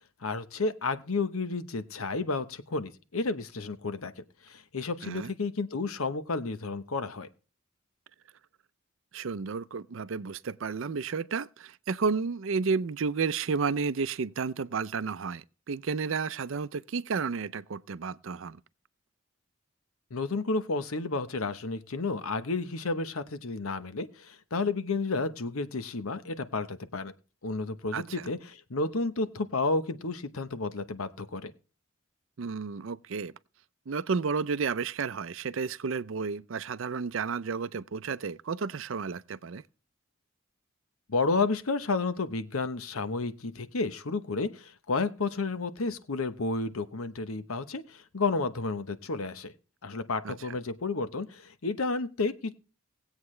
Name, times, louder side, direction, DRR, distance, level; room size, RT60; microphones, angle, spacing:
voice 1, 0.2-4.1 4.4-7.3 20.1-27.1 27.4-31.5 41.1-49.5 49.8-52.5, left 3 dB, 85° left, 1.0 m, -31 dB
voice 2, 9.1-18.6 27.9-28.3 32.4-33.3 33.9-39.6 50.2-50.3, right 5 dB, 65° right, 0.5 m, -32 dB
19.5 x 8.1 x 3.2 m
head